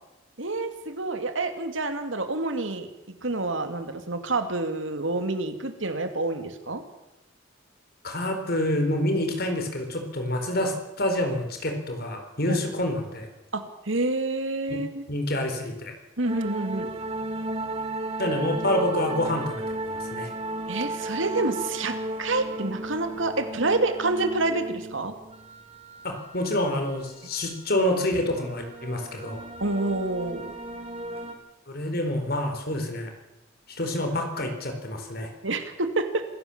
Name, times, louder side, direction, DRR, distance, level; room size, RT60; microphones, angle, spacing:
voice 1, 0.4-6.8 12.5-12.6 13.5-15.0 16.2-16.9 20.7-25.1 29.6-30.5 35.4-36.2, right 2 dB, 70° right, 8 dB, 2.4 m, -28 dB
voice 2, 8.0-13.3 14.7-14.8 15.1-15.9 18.2-20.3 26.0-29.4 31.7-33.1 33.7-35.3, left 1 dB, 50° left, 5 dB, 4.4 m, -27 dB
sound 1, 16.2-31.3, right 1 dB, 30° right, 2.2 m, -35 dB
26.5 x 16.0 x 7.3 m, 0.98 s
head